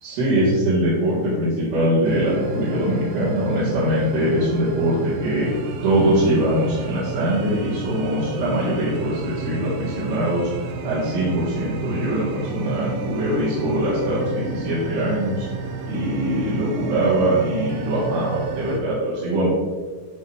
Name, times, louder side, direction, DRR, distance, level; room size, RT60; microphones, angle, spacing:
voice 1, 0.0-5.5 5.8-10.5 10.8-15.5 15.9-19.5, right 1 dB, 70° right, -9 dB, 3.7 m, -22 dB
sound 1, 2.0-18.8, right 4 dB, 90° right, 3.0 m, -32 dB
12.5 x 4.6 x 3.4 m, 1.4 s
omnidirectional pair, 5.0 m